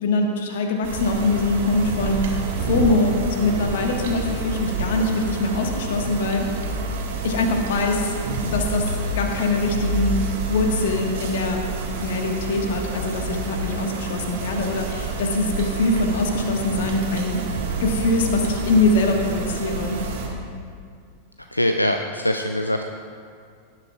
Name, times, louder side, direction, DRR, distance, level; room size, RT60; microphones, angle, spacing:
voice 1, 0.0-2.3 2.7-6.5 7.2-8.1 8.5-8.9 9.2-10.2 10.5-11.6 12.0-17.4 17.8-20.0, left 2 dB, 55° left, 2 dB, 1.4 m, -23 dB
sound 1, 0.8-20.3, right 3 dB, 55° right, 1.7 m, -28 dB
voice 2, 21.5-22.9, left 1 dB, 85° left, 5 dB, 0.4 m, -23 dB
17.5 x 10.5 x 2.4 m, 2.2 s
figure-of-eight pair, 90°, 0 cm